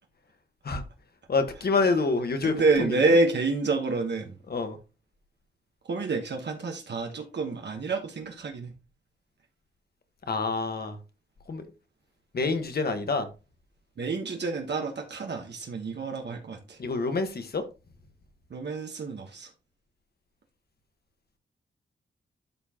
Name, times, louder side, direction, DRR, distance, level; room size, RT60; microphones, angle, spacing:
voice 1, 1.3-2.5 3.1-3.2 4.5-4.8 10.3-11.0 11.5-11.6 12.3-13.3 16.8-17.6, left 3 dB, 55° left, 8 dB, 1.5 m, -27 dB
voice 2, 2.4-4.4 5.8-8.7 14.0-16.8 18.5-19.5, right 3 dB, 65° right, 3 dB, 1.4 m, -28 dB
12.0 x 4.5 x 3.0 m, 0.30 s
wide cardioid pair, 125°, 19 cm